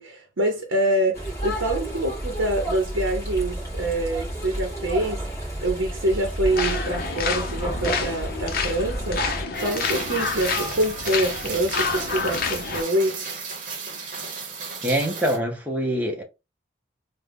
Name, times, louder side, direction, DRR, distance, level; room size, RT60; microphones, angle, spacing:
voice 1, 0.0-13.4, right 1 dB, 70° right, 0.7 m, -26 dB
sound 1, 1.1-9.4, right 1 dB, 15° left, 2.0 m, -31 dB
sound 2, 6.4-12.8, left 5 dB, 50° left, 0.7 m, -28 dB
Rain, 9.5-15.4, right 5 dB, 40° right, 0.9 m, -34 dB
voice 2, 14.8-16.2, equal, 10° right, 0.7 m, -24 dB
3.6 x 2.1 x 3.5 m
head